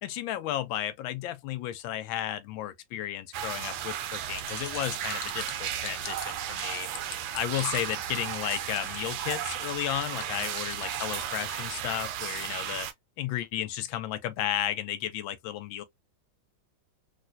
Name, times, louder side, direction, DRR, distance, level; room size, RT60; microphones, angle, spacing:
voice 1, 0.0-6.9 7.3-12.9 13.2-15.8, left 12 dB, 85° left, 1.4 m, -33 dB
sound 1, 3.3-12.9, right 10 dB, 70° right, 1.0 m, -34 dB
sound 2, 4.4-11.3, left 9 dB, 65° left, 1.1 m, -43 dB
3.5 x 2.5 x 2.5 m
omnidirectional pair, 2.1 m